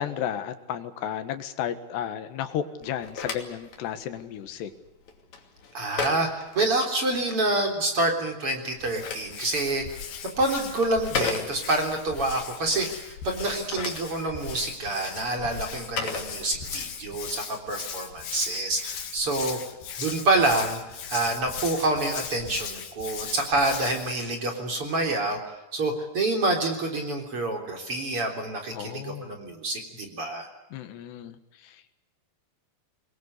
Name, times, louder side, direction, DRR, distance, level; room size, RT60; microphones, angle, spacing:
voice 1, 0.0-4.7 28.7-29.4 30.7-31.9, left 9 dB, 85° left, 9 dB, 3.7 m, -33 dB
Telephone, 2.8-7.3 8.6-12.0 13.4-17.0, left 5 dB, 45° left, 3.7 m, -36 dB
voice 2, 5.7-9.8 10.4-19.6 20.0-20.8 21.1-30.5, right 2 dB, 35° right, 3 dB, 4.2 m, -27 dB
Hands, 8.8-24.2, left 7 dB, 65° left, 4.0 m, -38 dB
24.5 x 21.5 x 8.2 m, 0.98 s
omnidirectional pair, 4.8 m